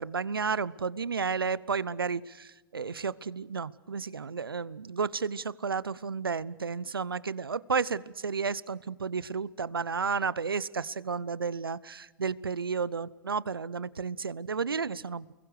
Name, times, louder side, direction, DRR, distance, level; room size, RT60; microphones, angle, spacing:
voice 1, 0.0-15.3, right 5 dB, 90° right, 21 dB, 0.8 m, -32 dB
29.0 x 22.0 x 6.7 m, 1.1 s
hypercardioid pair, 100°, 12 cm